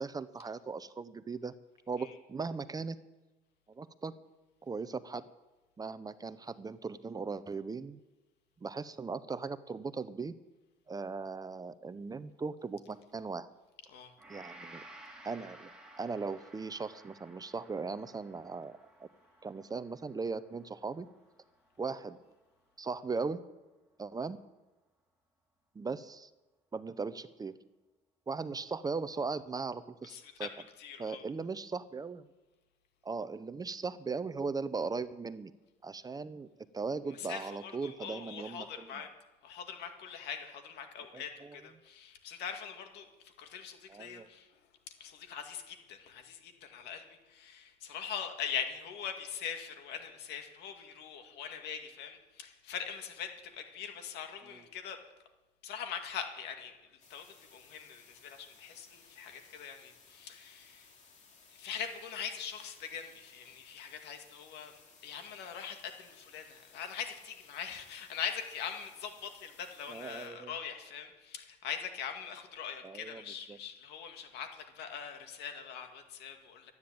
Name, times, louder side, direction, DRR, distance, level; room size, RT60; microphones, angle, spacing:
voice 1, 0.0-1.5 1.9-3.0 3.7-4.1 4.6-5.3 5.8-8.0 8.6-10.3 10.9-13.5 14.3-14.8 15.2-15.7 16.0-19.1 19.4-21.1 21.8-22.2 22.8-23.4 24.0-24.4 25.7-26.3 26.7-27.6 28.3-30.5 31.0-32.2 33.0-35.5 35.8-36.5 36.7-39.1 41.1-41.5 43.9-44.3 69.9-70.5 72.8-73.2 73.5-73.6, right 4 dB, 20° right, 14 dB, 0.6 m, -38 dB
Gong, 14.2-22.5 22.9-23.1, right 1 dB, 5° right, 2.9 m, -56 dB
voice 2, 30.0-31.2 37.1-39.1 39.4-55.0 55.6-60.9 61.5-76.7, left 7 dB, 80° left, 6 dB, 2.1 m, -42 dB
sound 1, 57.0-70.3, left 4 dB, 45° left, 2.9 m, -60 dB
12.5 x 9.5 x 8.7 m, 1.1 s
cardioid pair, 110°, 17 cm